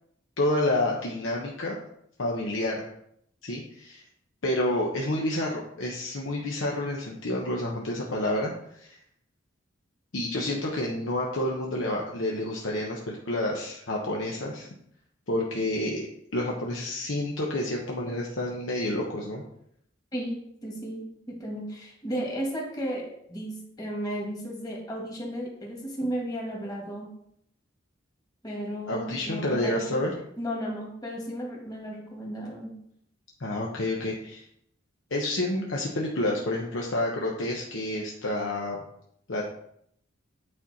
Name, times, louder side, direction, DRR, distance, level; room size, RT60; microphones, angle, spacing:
voice 1, 0.4-1.8 2.2-2.9 3.4-4.0 4.4-8.5 8.8-9.0 10.1-14.7 15.3-16.1 16.3-19.4 28.9-30.1 33.4-34.4 35.1-38.8 39.3-39.4, left 1 dB, 80° left, -1 dB, 1.0 m, -29 dB
voice 2, 20.6-23.0 23.3-27.1 28.4-29.9 30.4-32.7, equal, 20° left, -2 dB, 1.8 m, -34 dB
8.8 x 4.4 x 4.2 m, 0.72 s
head